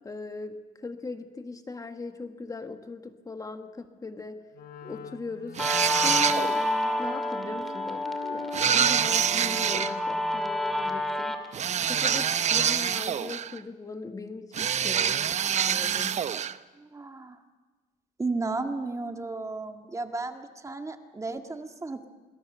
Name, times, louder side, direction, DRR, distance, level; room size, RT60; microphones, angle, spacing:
voice 1, 0.0-4.5 4.8-5.6 6.0-6.6 7.0-11.4 11.8-15.3 15.7-16.2, left 3 dB, 20° left, 7 dB, 1.5 m, -39 dB
Wind instrument woodwind instrument, 4.5-11.2, left 9 dB, 60° left, 1.7 m, -44 dB
Guitar, 5.6-12.6, left 1 dB, ahead, 2.4 m, -30 dB
sound 1, 5.6-6.7 8.5-9.9 11.5-13.6 14.5-16.6, right 8 dB, 45° right, 0.8 m, -26 dB
voice 2, 16.7-17.4 18.2-22.0, right 3 dB, 20° right, 5 dB, 1.8 m, -34 dB
28.0 x 20.5 x 6.8 m, 1.3 s
cardioid pair, 110°, 17 cm